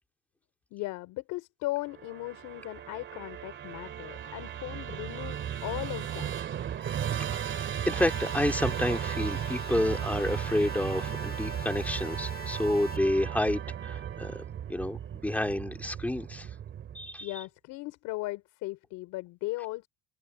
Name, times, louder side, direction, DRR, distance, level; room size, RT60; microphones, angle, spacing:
voice 1, 0.7-6.3 17.2-19.9, left 20 dB, 70° left, 4.8 m, -37 dB
Musical instrument, 1.9-17.2, right 9 dB, 40° right, 2.2 m, -35 dB
voice 2, 7.3-14.4 14.7-16.5 16.9-17.3, left 1 dB, 5° left, 2.4 m, -30 dB
sound 1, 8.0-13.0, left 7 dB, 30° left, 5.9 m, -46 dB
cardioid pair, 135°, 31 cm